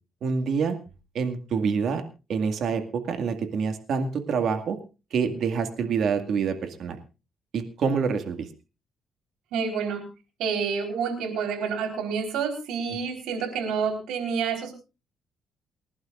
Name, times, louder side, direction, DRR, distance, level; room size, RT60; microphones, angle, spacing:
voice 1, 0.2-0.8 1.1-2.0 2.3-4.8 5.1-7.0 7.5-8.5, right 6 dB, 65° right, 7 dB, 2.1 m, -26 dB
voice 2, 9.5-10.0 10.4-14.7, right 6 dB, 90° right, 4 dB, 4.3 m, -28 dB
29.0 x 11.5 x 2.6 m, 0.31 s
cardioid pair, 90°, 0 cm